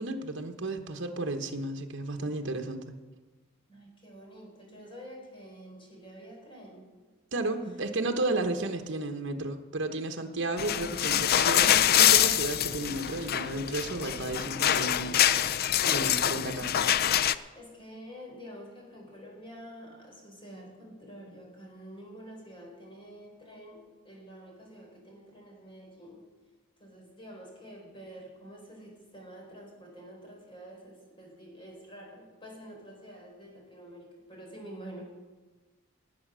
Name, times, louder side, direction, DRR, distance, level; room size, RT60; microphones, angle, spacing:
voice 1, 0.0-2.9 7.3-15.6 15.9-16.7, right 2 dB, 65° right, 5 dB, 1.2 m, -33 dB
voice 2, 3.7-6.9 7.7-7.8 17.5-26.2 26.8-35.1, equal, 25° left, 0 dB, 4.0 m, -48 dB
sound 1, 10.6-17.3, left 10 dB, 50° left, 0.4 m, -25 dB
18.5 x 8.3 x 6.3 m, 1.3 s
head